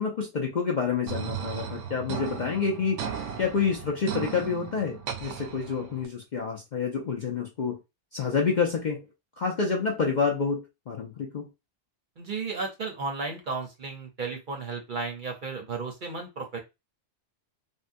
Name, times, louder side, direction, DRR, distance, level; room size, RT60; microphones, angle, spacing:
voice 1, 0.0-3.0 3.4-7.8 8.1-9.1 9.4-11.5, left 5 dB, 55° left, 0.5 m, -28 dB
sound 1, 1.1-6.1, right 8 dB, 75° right, 0.9 m, -36 dB
voice 2, 12.2-16.6, right 4 dB, 50° right, 0.8 m, -34 dB
3.6 x 2.2 x 2.5 m
omnidirectional pair, 1.3 m